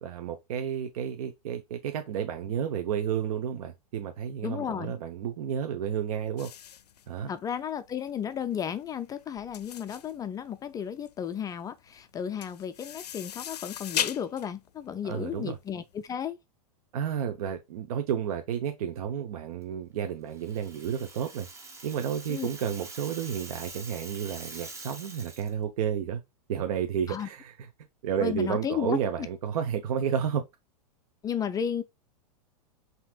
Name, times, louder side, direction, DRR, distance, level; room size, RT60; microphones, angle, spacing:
voice 1, 0.0-6.5 7.1-7.3 15.0-15.6 16.9-21.5 21.8-26.2 26.5-27.5 28.0-30.4, right 8 dB, 65° right, 0.7 m, -31 dB
voice 2, 4.4-5.0 7.3-16.4 22.3-22.5 27.1-27.3 28.2-29.3 31.2-31.8, left 8 dB, 20° left, 0.3 m, -33 dB
sound 1, 6.4-16.0, left 10 dB, 90° left, 0.4 m, -38 dB
Rattle (instrument), 20.3-25.5, right 3 dB, 15° right, 0.9 m, -45 dB
5.8 x 2.8 x 2.3 m
hypercardioid pair, 115°, 20 cm